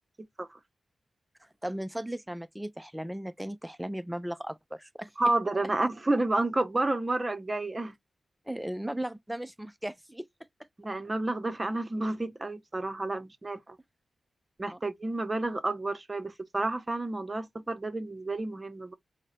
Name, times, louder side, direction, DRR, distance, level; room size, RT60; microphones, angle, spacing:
voice 1, 1.4-5.1 8.5-10.3 14.7-14.8, right 1 dB, 10° right, 0.5 m, -36 dB
voice 2, 5.2-7.9 10.8-13.8 14.6-18.9, right 2 dB, 30° right, 0.9 m, -30 dB
4.0 x 2.2 x 4.0 m
cardioid pair, 45°, 0 cm